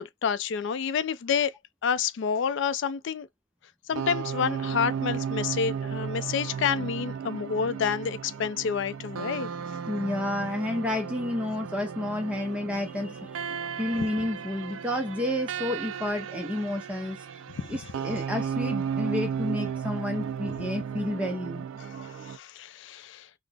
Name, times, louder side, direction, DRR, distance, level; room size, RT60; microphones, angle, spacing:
voice 1, 0.0-1.5 1.8-3.3 3.9-9.5 17.7-17.8 21.8-23.3, left 6 dB, 60° left, 0.3 m, -29 dB
sound 1, 3.9-22.4, right 7 dB, 70° right, 0.3 m, -34 dB
voice 2, 9.9-17.4 17.7-21.6, left 1 dB, 5° right, 0.5 m, -30 dB
3.9 x 2.0 x 3.3 m
head